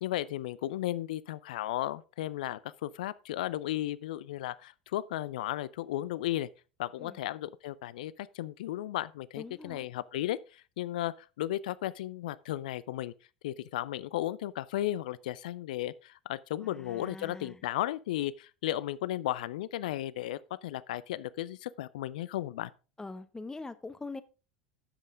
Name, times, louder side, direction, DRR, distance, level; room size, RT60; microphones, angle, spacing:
voice 1, 0.0-6.5 6.8-13.1 13.4-22.7, left 14 dB, 65° left, 0.4 m, -35 dB
voice 2, 9.4-9.9 16.6-17.6 23.0-24.2, left 3 dB, 10° left, 0.8 m, -43 dB
10.0 x 7.5 x 3.7 m
figure-of-eight pair, 75°, 5 cm